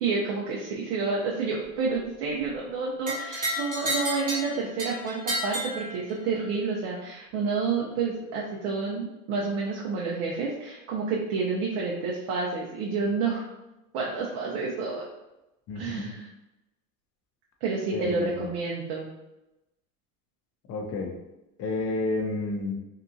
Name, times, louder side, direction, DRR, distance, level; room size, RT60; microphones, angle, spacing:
voice 1, 0.0-13.4 13.9-15.1 15.7-16.3 17.6-19.1, right 4 dB, 55° right, -3 dB, 0.6 m, -29 dB
sound 1, 3.1-6.4, right 1 dB, 15° right, 1.0 m, -32 dB
voice 2, 15.7-16.2 17.9-18.5 20.7-21.1 21.6-22.8, left 2 dB, 35° left, 2 dB, 0.6 m, -30 dB
2.8 x 2.3 x 2.5 m, 0.97 s
hypercardioid pair, 100°, 46 cm